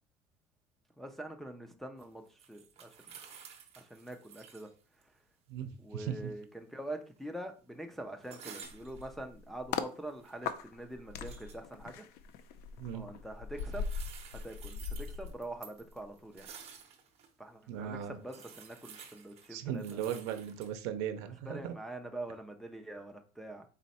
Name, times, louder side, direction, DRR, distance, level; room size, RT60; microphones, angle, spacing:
voice 1, 1.0-3.1 3.8-4.7 5.0-5.2 5.8-12.1 12.9-13.8 14.3-16.5 17.4-20.4 21.4-23.6, right 1 dB, ahead, 0.4 m, -45 dB
sound 1, 2.0-4.7 5.0-5.1 8.2-9.1 10.0-10.6 11.1-11.6 13.5-17.3 17.8-17.9 18.2-20.8, right 7 dB, 35° right, 0.8 m, -52 dB
voice 2, 5.5-6.3 12.8-13.0 17.7-18.2 19.5-21.7, right 9 dB, 80° right, 0.7 m, -37 dB
sound 2, 8.6-9.9 10.4-16.0 16.3-16.6, left 6 dB, 65° left, 0.5 m, -40 dB
4.2 x 3.0 x 4.2 m
cardioid pair, 145°, 18 cm